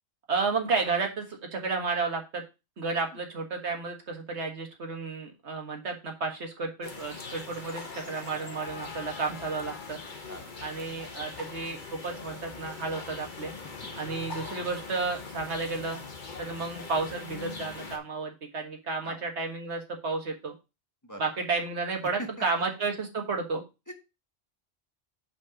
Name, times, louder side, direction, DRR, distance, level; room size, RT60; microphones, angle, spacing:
voice 1, 0.3-2.4 2.8-10.0 10.6-13.5 14.0-16.0 16.4-20.5 21.2-23.6, right 4 dB, 90° right, 3 dB, 1.8 m, -32 dB
sound 1, 6.8-18.0, left 4 dB, 50° left, 1.2 m, -41 dB
voice 2, 10.3-10.9 13.6-14.1 16.4-16.6 19.0-19.2 21.0-21.4 22.2-22.6 23.9-24.0, equal, 20° left, 4 dB, 0.9 m, -44 dB
5.4 x 5.4 x 4.9 m, 0.27 s
omnidirectional pair, 1.1 m